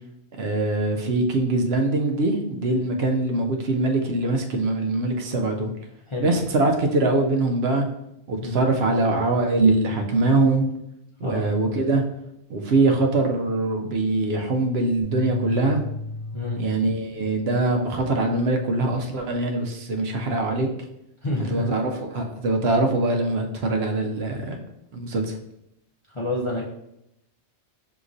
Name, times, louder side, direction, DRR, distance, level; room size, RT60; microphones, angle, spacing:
voice 1, 0.3-5.7 6.2-7.9 8.3-10.7 11.2-12.0 12.5-15.8 16.6-20.7 21.5-24.6 24.9-25.4, right 2 dB, 70° right, 3 dB, 0.8 m, -23 dB
sound 1, 15.0-17.5, left 1 dB, 70° left, 1.1 m, -34 dB
voice 2, 21.2-21.7 26.1-26.6, left 2 dB, 40° left, -4 dB, 0.4 m, -28 dB
5.9 x 2.9 x 2.6 m, 0.83 s
omnidirectional pair, 1.2 m